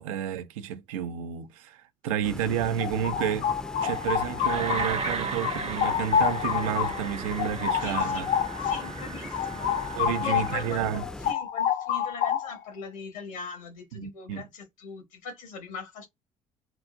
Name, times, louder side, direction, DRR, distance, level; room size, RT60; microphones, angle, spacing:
voice 1, 0.0-3.5 3.8-8.3 10.0-11.0 13.9-14.5, right 9 dB, 80° right, 0.4 m, -31 dB
sound 1, 2.2-11.3, left 1 dB, 5° left, 0.4 m, -40 dB
sound 2, 2.8-5.1 5.4-10.6 10.9-12.7, left 8 dB, 55° left, 0.5 m, -28 dB
sound 3, 3.8-11.0, right 5 dB, 35° right, 0.6 m, -36 dB
voice 2, 7.7-8.3 8.6-16.1, left 5 dB, 80° left, 1.3 m, -41 dB
3.8 x 2.3 x 2.5 m
hypercardioid pair, 50°, 17 cm